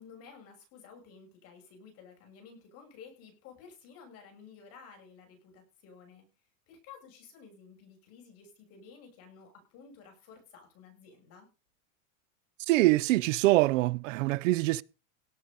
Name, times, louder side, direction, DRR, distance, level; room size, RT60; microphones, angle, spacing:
voice 1, 0.0-6.3 6.7-11.5, left 6 dB, 35° left, 7.0 m, -53 dB
voice 2, 12.7-14.8, right 18 dB, 70° right, 0.6 m, -24 dB
17.5 x 7.8 x 5.4 m
supercardioid pair, 170°, 39 cm